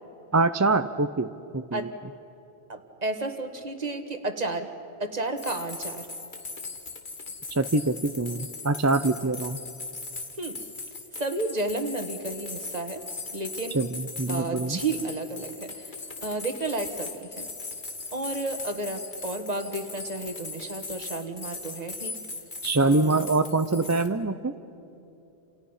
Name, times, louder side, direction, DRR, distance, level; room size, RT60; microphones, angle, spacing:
voice 1, 0.3-1.8 7.5-9.6 13.7-14.8 22.6-24.5, right 3 dB, 25° right, 10 dB, 0.4 m, -24 dB
voice 2, 2.7-4.7 5.0-6.1 10.4-10.6 11.1-13.0 13.3-13.8 14.3-17.5 18.1-22.2 22.8-23.3, right 2 dB, 40° right, 7 dB, 1.6 m, -32 dB
sound 1, 5.4-24.1, left 3 dB, 50° left, 1.7 m, -39 dB
30.0 x 28.0 x 5.6 m, 2.8 s
omnidirectional pair, 1.1 m